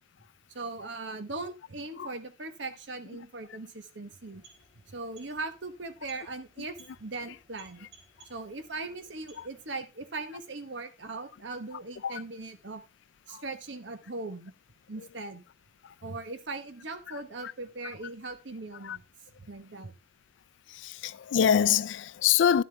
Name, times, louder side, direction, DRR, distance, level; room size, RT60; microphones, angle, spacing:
voice 1, 0.5-4.4 4.9-7.9 8.3-12.8 13.3-14.5 14.9-15.4 16.0-19.0 19.4-19.9, right 3 dB, 90° right, 1.2 m, -39 dB
sound 1, 4.1-9.9, right 4 dB, 25° right, 3.7 m, -60 dB
voice 2, 20.7-22.6, left 8 dB, 90° left, 0.4 m, -26 dB
11.0 x 7.3 x 3.4 m
head